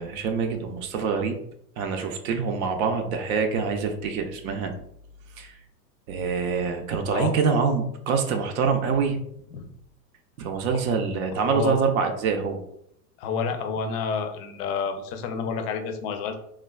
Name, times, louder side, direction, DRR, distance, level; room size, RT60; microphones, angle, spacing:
voice 1, 0.0-1.4 1.8-4.7 5.4-5.6 6.1-9.2 10.4-12.6, right 5 dB, 60° right, 5 dB, 0.6 m, -25 dB
voice 2, 11.4-11.8 13.2-16.4, left 5 dB, 40° left, 6 dB, 0.5 m, -29 dB
3.2 x 2.2 x 2.2 m, 0.72 s
hypercardioid pair, 115°, 48 cm